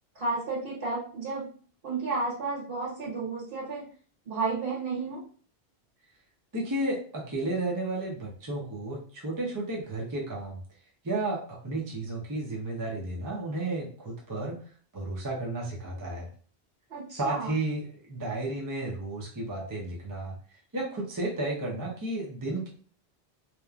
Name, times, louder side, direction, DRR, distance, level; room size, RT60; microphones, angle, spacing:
voice 1, 0.1-1.4 1.8-3.8 4.2-5.2 16.9-17.6, right 3 dB, 85° right, -7 dB, 1.5 m, -32 dB
voice 2, 6.5-10.6 11.0-14.6 14.9-16.3 17.1-20.3 20.7-22.7, right 2 dB, 25° right, -2 dB, 0.5 m, -33 dB
2.9 x 2.1 x 2.4 m, 0.43 s
omnidirectional pair, 1.0 m